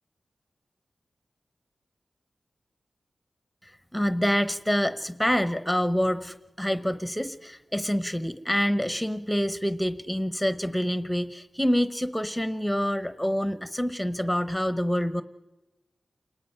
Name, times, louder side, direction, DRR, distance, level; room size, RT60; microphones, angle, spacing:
voice 1, 3.6-15.2, equal, ahead, 11 dB, 0.8 m, -27 dB
29.0 x 19.0 x 5.6 m, 1.1 s
wide cardioid pair, 85°, 0 cm